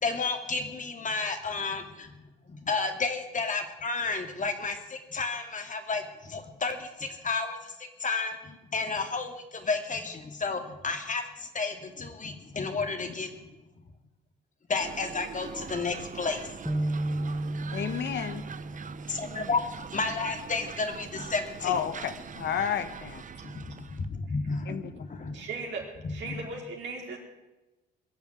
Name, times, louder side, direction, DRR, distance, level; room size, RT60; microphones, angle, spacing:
voice 1, 0.0-13.5 14.7-16.5 19.1-19.6 19.9-21.8 23.4-25.5 26.0-26.5, left 4 dB, 40° left, 6 dB, 2.7 m, -32 dB
sound 1, 14.8-24.1, right 6 dB, 40° right, 1.0 m, -42 dB
sound 2, 16.7-20.2, right 1 dB, ahead, 1.3 m, -34 dB
voice 2, 17.7-18.4 21.6-23.2 24.7-24.8, left 8 dB, 60° left, 11 dB, 1.3 m, -31 dB
voice 3, 25.3-27.2, right 4 dB, 65° right, 0 dB, 4.8 m, -37 dB
21.0 x 7.3 x 9.3 m, 1.0 s
supercardioid pair, 60°, 20 cm